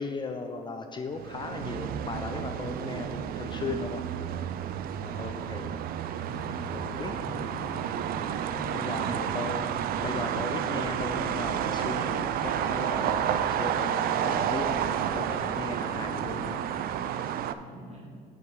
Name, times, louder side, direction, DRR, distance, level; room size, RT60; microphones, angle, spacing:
voice 1, 0.0-4.0 5.0-5.8 6.7-7.1 8.7-9.7 10.0-16.6, left 4 dB, 25° left, 6 dB, 0.5 m, -37 dB
sound 1, 1.1-17.5, right 9 dB, 60° right, 0.4 m, -31 dB
voice 2, 5.1-5.5 6.9-7.3 8.8-10.2 17.5-18.1, right 1 dB, 40° right, -2 dB, 1.9 m, -46 dB
sound 2, 6.2-16.6, left 3 dB, 65° left, 1.7 m, -45 dB
8.0 x 5.4 x 4.7 m, 2.2 s
cardioid pair, 110°, 17 cm